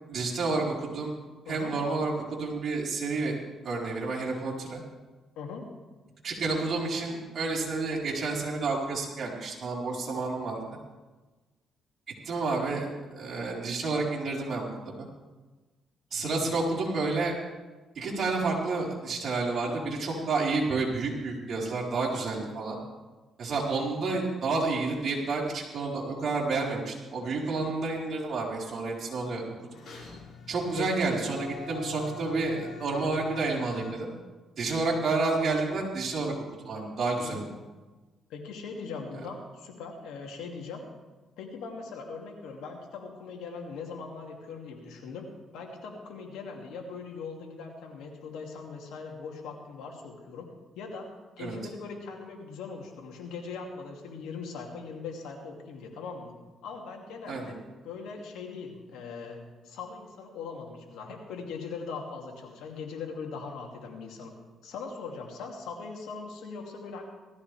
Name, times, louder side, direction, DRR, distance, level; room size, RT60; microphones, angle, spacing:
voice 1, 0.1-1.1 1.5-3.4 3.6-4.8 6.2-10.6 12.2-15.1 16.1-17.3 17.9-22.8 23.4-29.4 30.5-34.1 34.6-36.3 36.6-37.4 51.4-51.6 57.3-57.5, right 3 dB, 55° right, -4 dB, 4.2 m, -30 dB
voice 2, 16.1-16.5 30.8-30.9 37.2-37.4 38.3-40.8 41.4-45.3 45.5-50.5 50.8-51.1 51.4-56.3 56.6-57.6 57.8-59.4 59.6-64.3 64.6-67.0, left 5 dB, 90° left, 1 dB, 2.4 m, -40 dB
sound 1, 29.7-33.9, left 5 dB, 55° left, 5.5 m, -44 dB
18.5 x 14.0 x 3.4 m, 1.2 s
cardioid pair, 90°, 0 cm